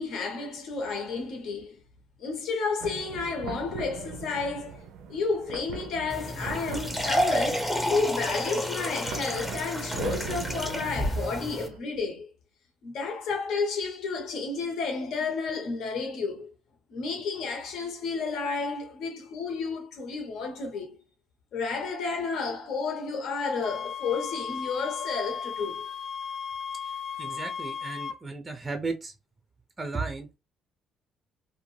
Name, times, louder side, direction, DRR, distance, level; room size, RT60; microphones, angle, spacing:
voice 1, 0.0-1.8 2.2-4.8 5.1-12.3 12.8-16.5 16.9-21.0 21.5-25.8, left 4 dB, 70° left, 0.8 m, -31 dB
sound 1, 2.8-11.8, right 6 dB, 90° right, 0.4 m, -40 dB
sound 2, 6.1-11.7, equal, 15° left, 0.7 m, -30 dB
sound 3, 23.6-28.2, left 7 dB, 45° left, 0.4 m, -35 dB
voice 2, 27.2-29.1 29.8-30.3, right 3 dB, 15° right, 0.4 m, -34 dB
2.5 x 2.2 x 3.1 m
cardioid pair, 115°, 0 cm